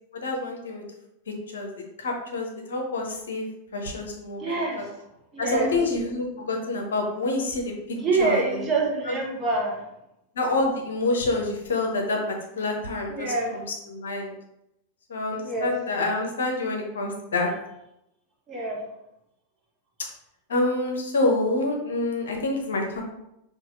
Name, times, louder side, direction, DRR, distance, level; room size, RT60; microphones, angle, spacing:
voice 1, 0.1-0.8 1.3-4.9 5.4-8.7 9.0-9.2 10.3-14.3 15.1-17.5 20.5-23.0, left 2 dB, 65° left, 2 dB, 0.7 m, -27 dB
voice 2, 4.4-4.8 5.3-5.8 8.0-9.8 13.1-13.5 15.4-15.7 18.5-18.8, right 3 dB, 25° right, -2 dB, 1.1 m, -26 dB
5.6 x 2.6 x 2.6 m, 0.85 s
figure-of-eight pair, 90°, 0 cm